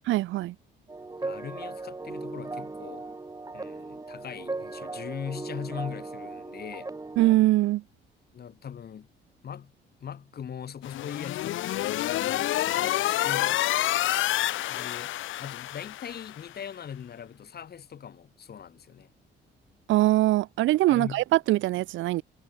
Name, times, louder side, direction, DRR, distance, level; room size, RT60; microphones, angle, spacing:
voice 1, 0.1-0.5 7.2-7.8 19.9-22.2, right 16 dB, 75° right, 0.4 m, -22 dB
sound 1, 0.9-7.4, right 3 dB, 15° right, 1.3 m, -37 dB
voice 2, 1.2-3.1 3.5-6.9 8.3-9.1 9.4-9.7 10.0-13.6 14.7-19.1 20.9-21.2, left 8 dB, 55° left, 2.8 m, -40 dB
sound 2, 10.8-16.4, left 14 dB, 80° left, 1.2 m, -28 dB
cardioid pair, 90°, 20 cm